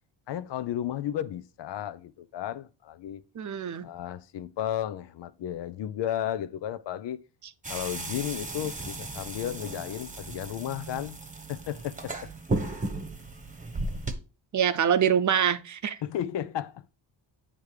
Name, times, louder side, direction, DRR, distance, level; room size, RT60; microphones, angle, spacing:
voice 1, 0.3-3.2 3.8-7.2 7.7-11.2 11.5-12.3 16.0-16.9, left 11 dB, 65° left, 0.6 m, -33 dB
voice 2, 3.3-3.9 14.5-16.0, right 8 dB, 40° right, 0.7 m, -25 dB
sound 1, 7.6-14.2, right 2 dB, 15° right, 1.1 m, -35 dB
8.9 x 3.4 x 4.8 m
cardioid pair, 85°, 47 cm